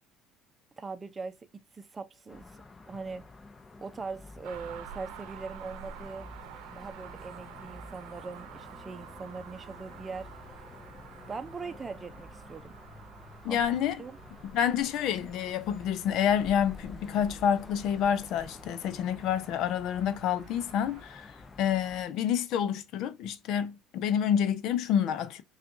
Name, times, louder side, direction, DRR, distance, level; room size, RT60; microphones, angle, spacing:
voice 1, 0.8-2.5 2.9-3.2 3.8-6.3 6.7-10.3 11.3-12.8 13.5-13.7 14.0-14.2, right 4 dB, 25° right, 0.6 m, -41 dB
sound 1, 2.3-22.1, left 3 dB, 25° left, 0.6 m, -50 dB
sound 2, 4.4-21.0, right 8 dB, 80° right, 0.7 m, -50 dB
voice 2, 13.4-14.0 14.4-25.4, left 9 dB, 65° left, 0.6 m, -28 dB
5.8 x 2.5 x 2.6 m
supercardioid pair, 90°, 0 cm